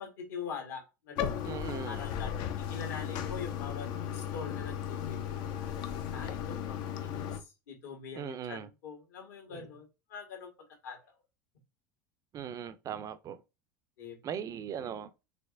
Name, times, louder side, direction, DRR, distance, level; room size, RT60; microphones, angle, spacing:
voice 1, 0.0-1.5 1.8-3.9 4.1-5.4 6.1-10.5 10.8-11.0 14.0-14.2, left 5 dB, 65° left, 1.6 m, -43 dB
Bathtub (filling or washing), 1.2-7.4, left 9 dB, 50° left, 0.6 m, -36 dB
voice 2, 1.5-2.0 8.1-8.7 12.3-13.4 14.2-15.1, right 8 dB, 35° right, 0.5 m, -39 dB
5.0 x 3.1 x 2.5 m
figure-of-eight pair, 75°, 10 cm